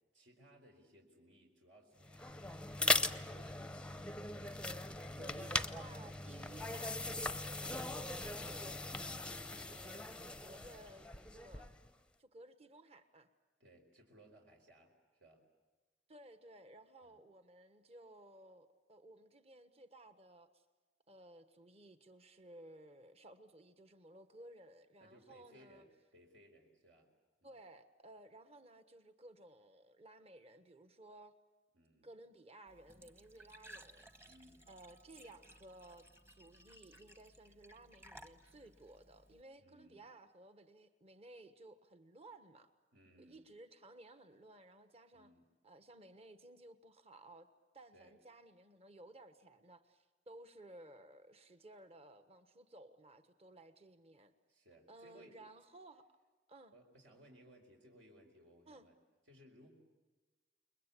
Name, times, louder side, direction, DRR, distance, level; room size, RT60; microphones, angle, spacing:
voice 1, 0.1-2.7 3.2-4.2 13.6-15.4 17.0-17.2 25.0-27.1 27.4-27.6 31.7-32.1 34.2-34.7 39.6-40.1 42.9-43.5 45.1-45.5 47.9-48.2 54.5-55.4 56.7-59.0 59.2-59.7, equal, 75° right, 4.6 m, -63 dB
sound 1, 2.0-11.9, left 2 dB, 5° left, 0.7 m, -39 dB
voice 2, 5.2-11.7 12.2-13.3 16.1-20.6 21.1-25.8 27.4-31.3 32.0-34.1 34.7-42.7 43.2-45.3 45.6-47.5 47.7-54.3 54.9-56.0 56.5-56.7 58.7-58.9, right 1 dB, 35° right, 1.3 m, -57 dB
Glass / Trickle dribble / Fill (with liquid), 32.7-39.4, right 1 dB, 15° right, 1.2 m, -59 dB
29.5 x 21.5 x 8.5 m
head